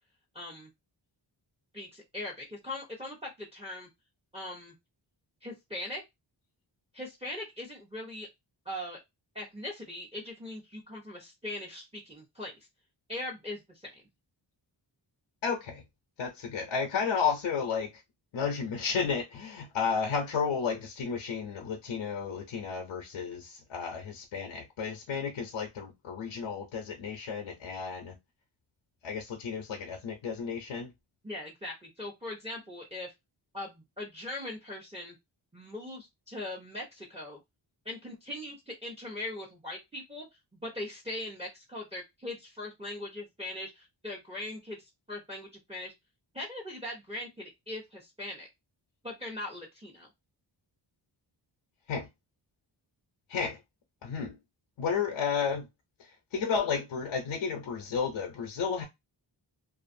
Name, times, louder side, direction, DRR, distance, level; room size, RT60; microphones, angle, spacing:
voice 1, 0.3-0.7 1.7-3.9 4.3-4.7 5.4-6.0 6.9-8.3 8.6-9.0 9.3-12.5 13.1-14.0 31.2-33.1 33.5-35.2 35.5-37.4 37.8-40.2 40.6-45.9 46.3-48.5 49.0-50.1, left 1 dB, 15° right, 0.8 m, -40 dB
voice 2, 15.4-15.8 16.2-18.0 18.3-28.2 29.0-30.9 51.9-52.1 53.3-53.6 54.0-54.4 54.8-55.7 56.0-58.8, left 6 dB, 90° left, 0.7 m, -32 dB
2.5 x 2.3 x 2.6 m
wide cardioid pair, 100°, 45 cm